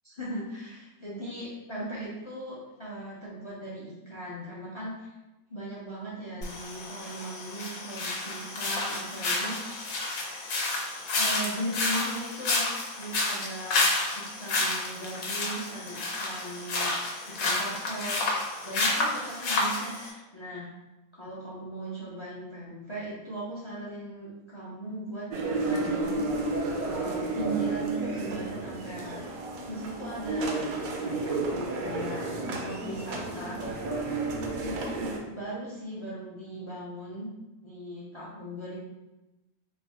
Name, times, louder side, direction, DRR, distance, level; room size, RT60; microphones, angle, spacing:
voice 1, 0.0-5.1 5.5-9.6 11.1-12.7 13.0-13.8 14.1-16.9 17.3-18.2 18.6-20.7 21.1-26.2 26.8-29.2 29.7-30.6 31.0-33.6 34.6-37.3 37.6-38.8, right 1 dB, 35° left, -6 dB, 0.4 m, -38 dB
sound 1, 6.4-20.1, left 2 dB, 80° left, 1.2 m, -30 dB
sound 2, 25.3-35.2, right 2 dB, 80° right, 1.0 m, -31 dB
3.5 x 2.1 x 3.4 m, 1.0 s
omnidirectional pair, 1.5 m